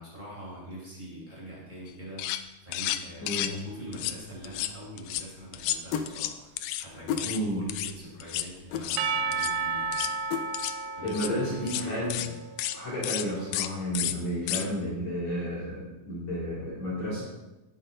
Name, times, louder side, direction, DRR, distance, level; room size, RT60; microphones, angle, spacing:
voice 1, 0.0-2.3 2.6-10.2 11.0-12.4, right 1 dB, 10° right, -7 dB, 6.0 m, -43 dB
sharpening knife, 1.9-2.0 2.2-2.4 2.7-3.6 3.9-4.2 4.4-5.2 5.5-6.9 7.2-7.4 7.7-7.9 8.2-8.5 8.8-9.0 9.3-9.5 9.9-10.1 10.5-10.8 11.1-11.3 11.7-11.8 12.1-12.3 12.6-12.8 13.0-13.3 13.5-13.7 13.9-14.1 14.5-14.7, left 13 dB, 85° left, 2.2 m, -32 dB
voice 2, 3.2-3.6 7.2-7.7 11.0-12.2 12.7-17.2, equal, 45° left, -6 dB, 3.9 m, -32 dB
sound 1, 5.9-6.1 7.1-7.3 8.7-8.9 10.3-10.5, left 7 dB, 70° left, 2.4 m, -30 dB
Percussion / Church bell, 9.0-13.3, right 5 dB, 80° right, 2.9 m, -33 dB
18.0 x 12.0 x 3.9 m, 1.0 s
omnidirectional pair, 5.0 m